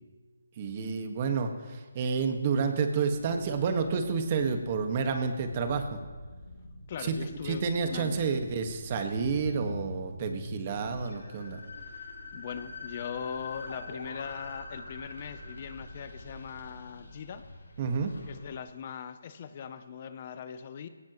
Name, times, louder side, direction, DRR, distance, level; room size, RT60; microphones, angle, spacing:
voice 1, 0.6-6.0 7.0-7.2 7.4-11.6 17.8-18.1, right 5 dB, 35° right, 5 dB, 1.7 m, -30 dB
sound 1, 3.1-18.6, left 2 dB, 80° left, 6.0 m, -44 dB
voice 2, 6.9-8.2 12.3-17.4 18.3-20.9, left 7 dB, 40° left, 11 dB, 0.8 m, -40 dB
19.5 x 18.5 x 3.2 m, 1.4 s
hypercardioid pair, 160°, 0 cm